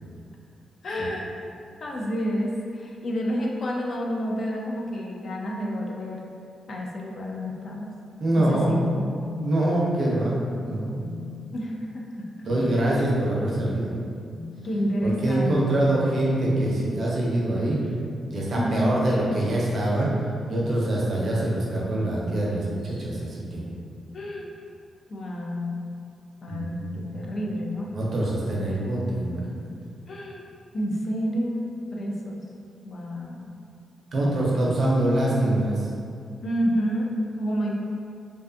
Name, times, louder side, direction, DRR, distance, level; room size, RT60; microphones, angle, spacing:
voice 1, 0.8-1.3 1.8-6.2 6.7-7.9 8.4-9.2 11.5-12.3 14.6-15.9 18.6-19.0 24.1-24.5 25.1-25.9 26.4-27.9 30.1-30.4 30.7-32.5 32.8-33.5 34.2-34.5 36.4-37.7, equal, 45° left, -1 dB, 0.3 m, -29 dB
voice 2, 8.2-8.7 9.4-10.3 10.6-11.0 12.4-14.0 15.0-17.8 18.3-20.1 20.5-23.7 26.5-27.3 27.9-29.7 34.1-35.9, right 1 dB, 45° right, -5 dB, 0.5 m, -24 dB
sound 1, 10.7-11.5 12.3-12.8 14.2-14.6 15.7-16.7 18.2-20.1 21.1-21.6 22.8-23.1, left 6 dB, 70° left, 0.9 m, -41 dB
2.4 x 2.3 x 2.5 m, 2.4 s
wide cardioid pair, 145°, 0 cm